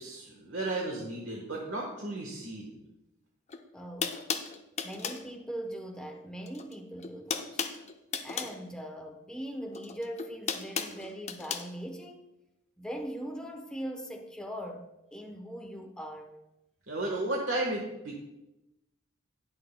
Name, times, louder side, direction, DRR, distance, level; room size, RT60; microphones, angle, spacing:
voice 1, 0.0-2.8 16.9-18.2, right 2 dB, 60° right, 1.3 m, -34 dB
sound 1, 3.5-3.6 4.0-5.3 6.4-6.7 7.0-8.6 9.7-11.7, left 6 dB, 30° left, 0.6 m, -34 dB
voice 2, 3.7-4.2 4.8-7.6 8.2-12.3 12.8-16.3, equal, 5° left, 0.9 m, -40 dB
19.5 x 6.5 x 2.2 m
head